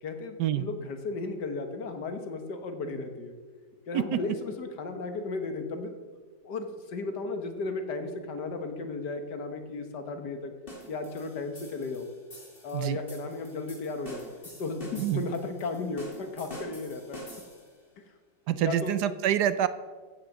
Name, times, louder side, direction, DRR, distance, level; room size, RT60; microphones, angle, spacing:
voice 1, 0.0-3.4 3.9-6.0 6.4-10.5 10.9-12.1 12.6-14.3 14.6-17.2 18.0-18.1 18.6-19.0, left 3 dB, 70° left, 6 dB, 1.9 m, -35 dB
sound 1, 10.7-17.8, equal, 30° left, 3.3 m, -47 dB
voice 2, 18.5-19.7, right 11 dB, 70° right, 13 dB, 1.1 m, -26 dB
15.0 x 6.4 x 7.2 m, 1.4 s
omnidirectional pair, 1.9 m